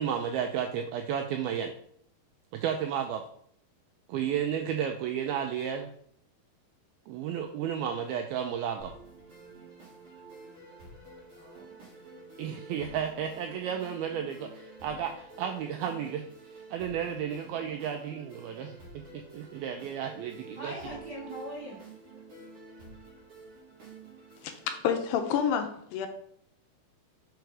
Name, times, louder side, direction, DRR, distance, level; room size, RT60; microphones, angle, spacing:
voice 1, 0.0-1.7 2.5-3.3 4.1-5.9 7.1-8.9 12.4-16.3 16.7-21.0, right 8 dB, 85° right, 5 dB, 2.1 m, -33 dB
sound 1, 8.8-24.8, right 2 dB, 40° right, 2.5 m, -49 dB
voice 2, 11.3-11.9 20.6-21.8, equal, 65° right, -6 dB, 1.0 m, -41 dB
voice 3, 24.4-26.1, left 8 dB, 80° left, 6 dB, 2.7 m, -29 dB
6.5 x 4.6 x 4.7 m, 0.66 s
omnidirectional pair, 4.8 m